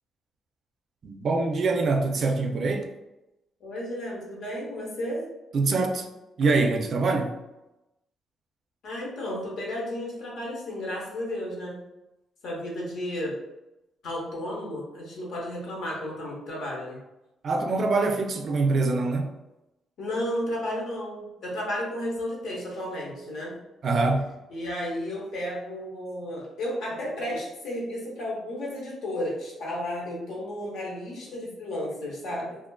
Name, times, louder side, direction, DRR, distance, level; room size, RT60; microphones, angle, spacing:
voice 1, 1.0-2.9 5.5-6.1 6.4-7.3 17.4-19.3 23.8-24.3, right 3 dB, 55° right, 4 dB, 0.4 m, -24 dB
voice 2, 3.6-5.3 8.8-11.8 12.4-13.4 14.0-17.0 20.0-23.5 24.5-32.6, left 1 dB, 75° left, -3 dB, 0.8 m, -33 dB
2.4 x 2.4 x 2.2 m, 0.96 s
cardioid pair, 90°, 0 cm